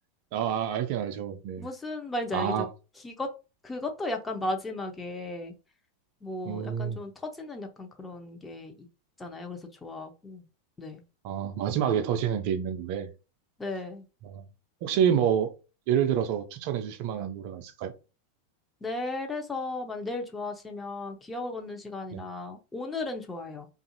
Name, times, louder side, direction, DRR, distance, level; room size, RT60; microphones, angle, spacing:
voice 1, 0.3-1.7 2.3-2.7 6.4-7.0 11.2-13.1 14.2-14.4 14.8-15.5 15.9-17.9 22.1-22.2, right 8 dB, 45° right, 0.4 m, -28 dB
voice 2, 1.6-2.7 3.0-3.3 3.6-5.5 6.2-8.9 9.2-10.4 10.8-11.0 13.6-14.0 18.8-23.7, left 2 dB, 10° left, 0.5 m, -35 dB
2.5 x 2.4 x 2.7 m
figure-of-eight pair, 90°, 0 cm